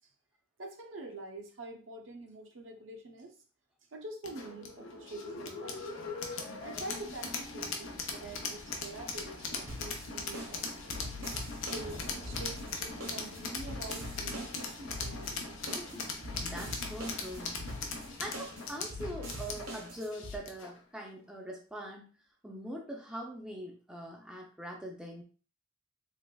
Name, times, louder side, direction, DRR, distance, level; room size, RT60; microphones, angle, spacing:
voice 1, 0.6-3.3 3.9-6.0 6.6-11.2 11.7-15.6 15.9-16.0, right 2 dB, 65° right, 3 dB, 0.6 m, -46 dB
sound 1, 4.2-20.8, left 4 dB, 70° left, 0.6 m, -40 dB
sound 2, 9.7-20.4, left 1 dB, 80° right, 1.0 m, -43 dB
Thunder, 11.4-13.7, equal, 90° left, 1.1 m, -49 dB
voice 2, 16.2-17.6 18.2-22.1 22.4-25.2, equal, 5° right, -1 dB, 0.4 m, -42 dB
3.3 x 3.1 x 2.2 m, 0.38 s
head